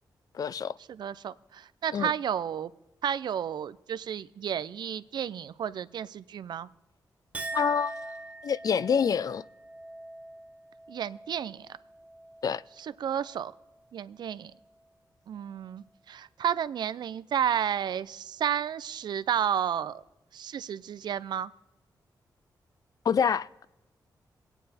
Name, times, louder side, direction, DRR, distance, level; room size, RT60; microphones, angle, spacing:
voice 1, 0.3-0.7 1.9-2.1 7.5-8.1 8.4-9.4 12.4-12.6 23.0-23.7, left 7 dB, 55° left, 0.4 m, -27 dB
voice 2, 0.9-2.7 3.0-6.7 10.9-11.7 12.8-13.5 13.9-14.5 15.3-20.0 20.3-21.5, right 9 dB, 75° right, 0.4 m, -32 dB
Chink clink, 7.3-13.9 14.3-14.9, right 2 dB, 20° right, 0.9 m, -43 dB
23.0 x 9.1 x 4.1 m
cardioid pair, 90°, 8 cm